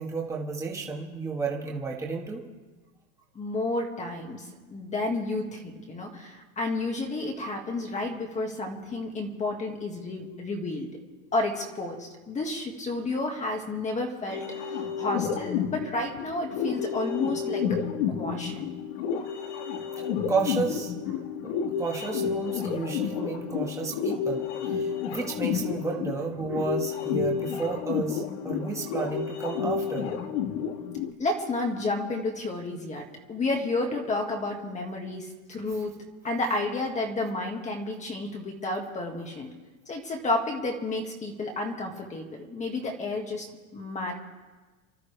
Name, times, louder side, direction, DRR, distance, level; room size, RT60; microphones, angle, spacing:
voice 1, 0.0-2.4 20.0-21.2 21.8-30.1, right 4 dB, 5° right, -2 dB, 1.7 m, -32 dB
voice 2, 3.4-10.9 11.3-17.6 18.1-18.7 31.2-35.9 36.2-39.5 39.9-43.5 43.7-44.1, left 2 dB, 15° left, 1 dB, 1.8 m, -31 dB
sound 1, 14.3-31.1, left 7 dB, 55° left, 1.6 m, -30 dB
29.5 x 12.5 x 3.4 m, 1.3 s
supercardioid pair, 150°, 41 cm